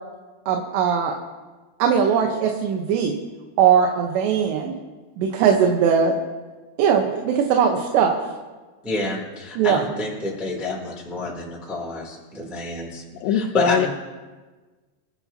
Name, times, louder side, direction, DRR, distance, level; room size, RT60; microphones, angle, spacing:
voice 1, 0.5-1.1 1.8-3.2 3.6-4.8 5.2-6.2 6.8-8.2 9.6-9.8 13.6-13.7, right 7 dB, 85° right, 2 dB, 3.3 m, -20 dB
voice 2, 8.8-13.0 13.3-13.9, left 2 dB, ahead, -4 dB, 2.1 m, -28 dB
voice 3, 13.2-13.9, left 11 dB, 85° left, 9 dB, 3.0 m, -22 dB
28.0 x 12.0 x 2.9 m, 1.3 s
omnidirectional pair, 4.9 m